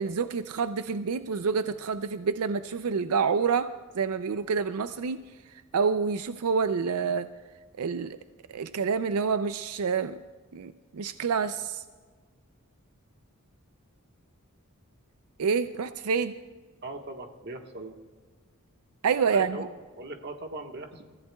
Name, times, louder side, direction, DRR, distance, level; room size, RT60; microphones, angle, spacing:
voice 1, 0.0-3.7 3.9-5.2 5.7-7.3 7.8-8.2 8.5-10.2 10.5-11.8 15.4-16.3 19.0-19.6, right 5 dB, 85° right, 11 dB, 0.5 m, -27 dB
voice 2, 16.8-18.0 19.2-21.1, right 2 dB, 50° right, 4 dB, 1.4 m, -40 dB
28.5 x 14.5 x 2.3 m, 1.5 s
head